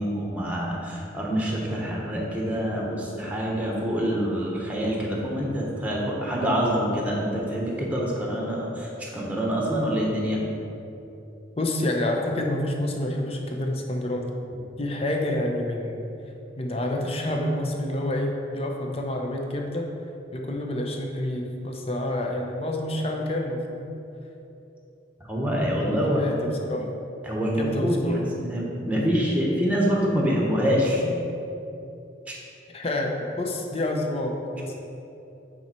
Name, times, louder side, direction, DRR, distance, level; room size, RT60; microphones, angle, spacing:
voice 1, 0.0-10.4 25.2-26.2 27.2-31.1 32.3-32.4, equal, 10° right, -3 dB, 1.1 m, -26 dB
voice 2, 11.6-14.3 14.8-16.1 16.6-19.9 20.3-23.9 25.7-26.9 27.6-28.2 28.9-29.2 32.7-34.7, left 1 dB, 30° left, 1 dB, 0.7 m, -28 dB
8.8 x 4.4 x 4.4 m, 2.8 s
head